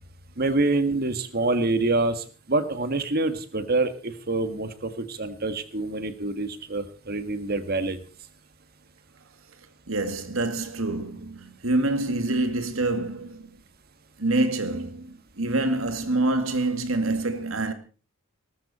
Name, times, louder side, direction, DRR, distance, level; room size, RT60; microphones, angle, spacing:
voice 1, 0.4-8.0, right 2 dB, 50° right, 1.7 m, -26 dB
voice 2, 9.9-13.5 14.2-17.7, right 2 dB, 75° right, 2.1 m, -26 dB
19.0 x 13.5 x 4.3 m
head